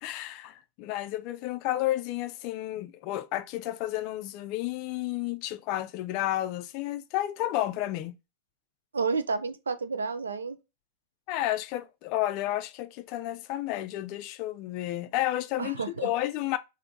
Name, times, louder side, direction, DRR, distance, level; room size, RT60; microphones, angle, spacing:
voice 1, 0.0-8.1 11.3-16.6, left 14 dB, 45° left, 0.4 m, -31 dB
voice 2, 8.9-10.6 15.6-16.1, right 4 dB, 70° right, 0.5 m, -30 dB
3.3 x 2.7 x 3.7 m
figure-of-eight pair, 90°, 0 cm